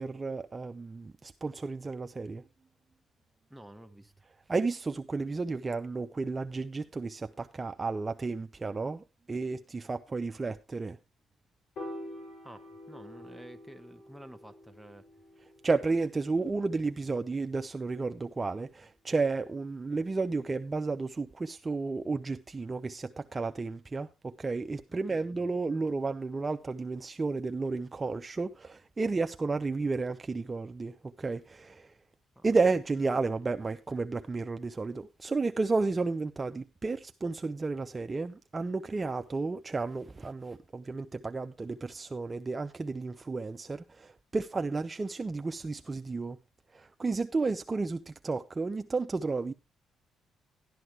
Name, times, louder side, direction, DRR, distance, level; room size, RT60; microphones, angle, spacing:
voice 1, 0.0-2.4 4.5-11.0 15.6-32.0 32.4-46.4 46.7-49.5, right 3 dB, 25° right, 0.5 m, -32 dB
voice 2, 3.5-4.1 12.4-15.1 24.9-25.3 32.3-32.5, right 1 dB, ahead, 1.1 m, -50 dB
Piano, 11.8-18.1, left 1 dB, 70° left, 5.6 m, -48 dB
12.0 x 11.5 x 3.2 m
cardioid pair, 90°, 0 cm